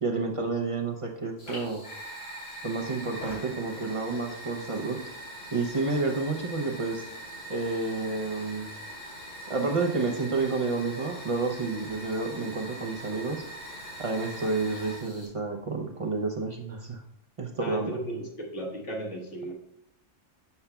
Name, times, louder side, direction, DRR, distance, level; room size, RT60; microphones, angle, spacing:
voice 1, 0.0-1.8 2.6-5.0 5.5-7.1 7.5-8.7 9.5-13.5 14.0-17.0 17.4-18.0, right 3 dB, 45° right, 1 dB, 0.4 m, -30 dB
Fire, 1.4-15.3, right 1 dB, 90° left, 3.2 m, -42 dB
voice 2, 17.6-19.5, right 1 dB, 65° left, -1 dB, 1.6 m, -35 dB
6.9 x 6.9 x 2.2 m, 0.79 s
omnidirectional pair, 1.3 m